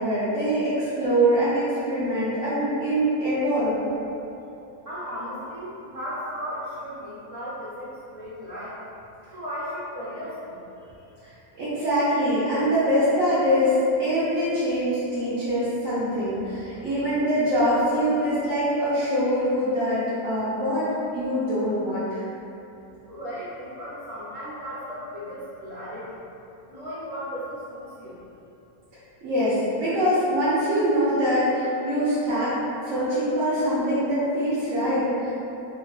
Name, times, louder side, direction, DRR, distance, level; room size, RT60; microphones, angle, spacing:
voice 1, 0.0-3.8 11.6-13.7 14.0-22.2 29.2-32.6 32.8-35.3, equal, 65° right, -13 dB, 1.0 m, -24 dB
voice 2, 4.8-8.8 9.3-11.1 23.1-26.2 26.7-28.2, equal, 50° right, -13 dB, 0.4 m, -36 dB
3.6 x 2.2 x 2.3 m, 2.9 s
omnidirectional pair, 1.6 m